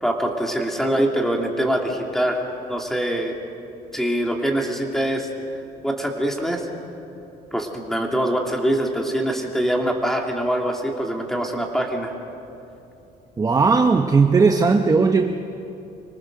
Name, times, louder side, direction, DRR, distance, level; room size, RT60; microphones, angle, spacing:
voice 1, 0.0-3.3 3.9-5.3 5.8-6.7 7.5-12.1, right 1 dB, ahead, 1 dB, 2.8 m, -24 dB
voice 2, 13.4-15.4, right 4 dB, 20° right, 5 dB, 0.8 m, -17 dB
25.5 x 19.0 x 6.7 m, 2.8 s
cardioid pair, 110°, 17 cm